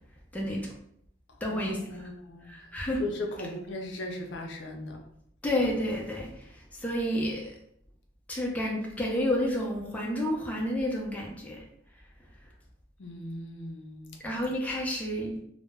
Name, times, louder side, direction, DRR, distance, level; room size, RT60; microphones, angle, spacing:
voice 1, 0.3-0.7 1.4-2.1 2.5-3.0 5.4-7.5 8.3-11.6 14.2-15.4, left 1 dB, 10° left, -2 dB, 0.4 m, -30 dB
voice 2, 1.3-2.7 3.0-5.0 13.0-14.2, left 2 dB, 75° left, 2 dB, 0.5 m, -38 dB
2.0 x 2.0 x 3.3 m, 0.71 s
head